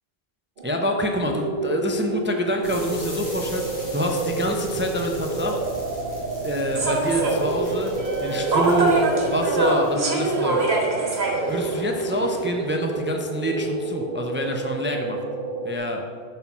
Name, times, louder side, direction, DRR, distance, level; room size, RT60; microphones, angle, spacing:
voice 1, 0.6-5.6 6.4-7.9 8.2-10.7 11.5-15.2 15.6-16.0, equal, 15° right, 2 dB, 0.4 m, -26 dB
sound 1, 0.6-15.8, right 3 dB, 55° right, 0.8 m, -29 dB
sound 2, 2.6-10.5, left 2 dB, 40° left, 2.3 m, -39 dB
Human voice / Subway metro underground, 6.7-12.5, right 2 dB, 80° right, 1.6 m, -25 dB
7.3 x 4.4 x 5.9 m, 2.1 s
omnidirectional pair, 1.0 m